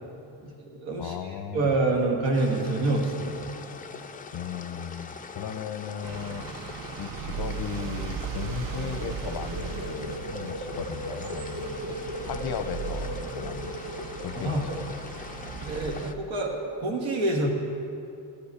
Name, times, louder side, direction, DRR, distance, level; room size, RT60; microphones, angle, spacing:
voice 1, 0.4-3.5 14.4-14.8 15.6-17.5, right 2 dB, 85° right, 0 dB, 1.6 m, -27 dB
voice 2, 1.0-1.7 4.3-6.5 7.0-13.8 14.2-15.1, left 8 dB, 55° left, 11 dB, 0.6 m, -36 dB
sound 1, 2.3-16.1, left 5 dB, 20° left, 0.4 m, -42 dB
sound 2, 6.0-16.1, right 7 dB, 50° right, 0.5 m, -37 dB
sound 3, 8.5-15.0, right 1 dB, 30° right, 1.0 m, -39 dB
13.5 x 5.3 x 8.3 m, 2.6 s
wide cardioid pair, 170°, 45 cm